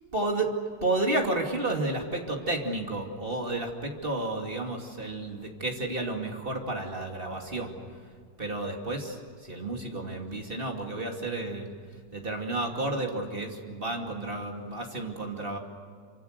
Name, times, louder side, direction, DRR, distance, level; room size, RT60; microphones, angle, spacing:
voice 1, 0.1-0.5 0.8-7.8 8.4-11.7 12.1-15.6, right 2 dB, 20° right, 1 dB, 2.0 m, -31 dB
27.5 x 26.0 x 6.8 m, 2.1 s
omnidirectional pair, 4.6 m